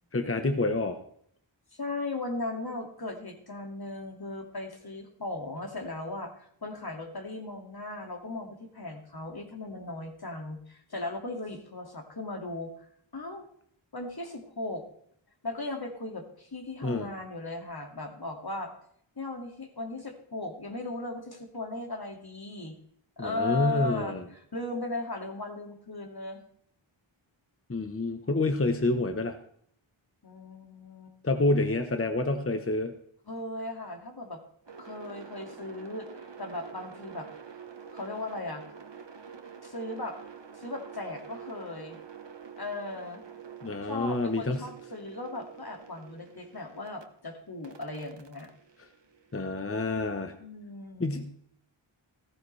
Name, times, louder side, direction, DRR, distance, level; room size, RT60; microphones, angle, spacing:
voice 1, 0.1-1.0 16.8-17.1 23.2-24.2 27.7-29.4 31.2-32.9 43.6-44.6 49.3-50.3 51.0-51.3, left 2 dB, 30° left, 7 dB, 1.0 m, -28 dB
voice 2, 1.7-12.9 13.1-13.5 13.9-14.9 15.4-18.7 19.2-22.8 23.2-26.4 30.2-31.1 33.3-34.4 34.8-37.3 37.9-38.6 39.6-40.2 40.5-42.0 42.6-43.2 43.8-48.5 50.4-51.1, left 2 dB, 50° left, 3 dB, 2.3 m, -37 dB
sound 1, 34.7-47.0 47.6-49.8, right 6 dB, 60° right, 1.2 m, -47 dB
15.5 x 14.0 x 3.3 m, 0.66 s
wide cardioid pair, 60°, 49 cm